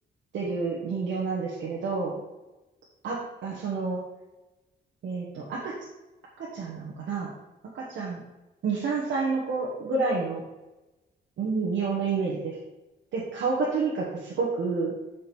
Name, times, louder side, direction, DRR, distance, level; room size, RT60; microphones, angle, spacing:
voice 1, 0.3-2.2 3.0-4.0 5.0-5.7 6.5-7.3 7.7-8.2 8.6-10.4 11.4-12.6 13.1-14.9, right 4 dB, 80° right, -5 dB, 1.4 m, -29 dB
6.9 x 5.1 x 4.6 m, 1.1 s
cardioid pair, 100°, 19 cm